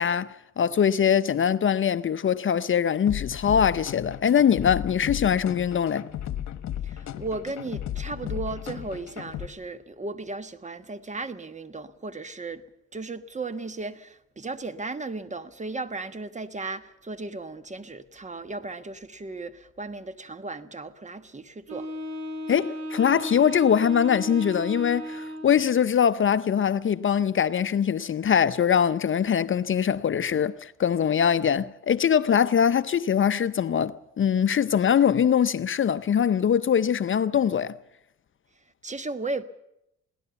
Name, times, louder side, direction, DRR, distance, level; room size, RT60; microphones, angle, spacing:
voice 1, 0.0-6.1 22.5-37.8, left 8 dB, 40° left, 0.7 m, -22 dB
sound 1, 3.1-9.5, left 11 dB, 65° left, 1.4 m, -35 dB
voice 2, 6.8-12.6 12.9-21.9 38.8-39.4, right 3 dB, 25° right, 1.4 m, -35 dB
Wind instrument woodwind instrument, 21.7-25.8, right 1 dB, 60° right, 3.1 m, -35 dB
22.0 x 17.0 x 7.0 m
cardioid pair, 90°, 30 cm